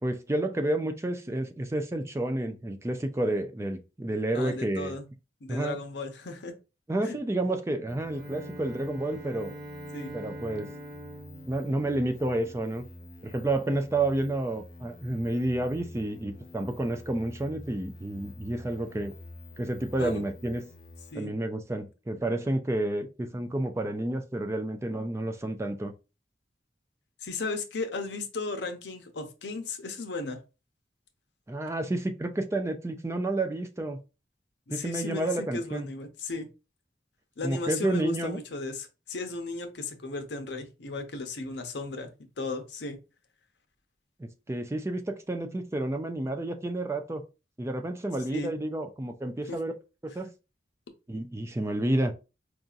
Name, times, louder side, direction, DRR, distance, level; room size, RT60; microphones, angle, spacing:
voice 1, 0.0-4.9 5.5-5.8 6.9-9.5 10.1-10.7 11.5-12.9 13.2-19.1 19.6-20.7 21.1-25.9 31.5-34.0 34.7-35.9 37.4-38.4 44.2-47.2 47.6-49.7 50.0-50.3 51.1-52.1, right 1 dB, 15° right, 0.3 m, -30 dB
voice 2, 4.3-5.0 5.4-6.5 7.0-7.2 9.9-10.2 20.0-20.2 21.1-21.3 27.2-30.4 34.7-36.5 37.4-42.1 42.4-43.0 48.3-48.5 49.5-49.6, left 3 dB, 80° left, 0.7 m, -35 dB
sound 1, 7.9-21.1, left 1 dB, 50° left, 0.5 m, -48 dB
Bowed string instrument, 8.0-12.6, right 1 dB, 65° right, 0.8 m, -44 dB
4.7 x 2.7 x 2.4 m
head